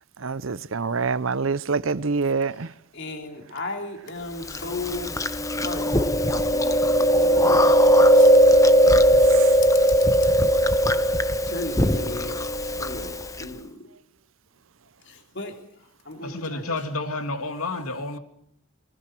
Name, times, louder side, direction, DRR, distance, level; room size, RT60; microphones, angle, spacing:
voice 1, 0.2-2.7 9.3-9.5, right 4 dB, 65° right, 0.7 m, -26 dB
voice 2, 2.9-5.1 5.5-7.8 8.1-8.4 11.5-12.4 12.8-13.8 15.1-15.6 16.1-16.8, left 2 dB, 55° left, 3.4 m, -35 dB
Chewing mastication, 4.5-13.4, equal, 15° left, 0.8 m, -19 dB
voice 3, 16.2-18.2, left 2 dB, 80° left, 2.8 m, -30 dB
23.0 x 20.0 x 6.1 m
head